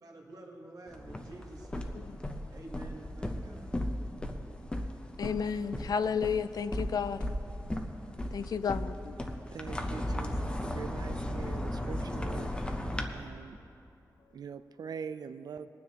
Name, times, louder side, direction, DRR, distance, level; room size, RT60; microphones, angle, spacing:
voice 1, 0.0-2.0 2.5-3.7, right 2 dB, 65° right, 0 dB, 1.4 m, -49 dB
sound 1, 0.9-13.0, left 1 dB, 15° left, 0.7 m, -36 dB
voice 2, 5.2-7.2 8.3-9.2, left 6 dB, 70° left, 13 dB, 0.4 m, -32 dB
voice 3, 9.5-13.6 14.3-15.7, right 6 dB, 90° right, 11 dB, 0.4 m, -43 dB
21.0 x 9.4 x 2.9 m, 2.8 s
wide cardioid pair, 155°, 7 cm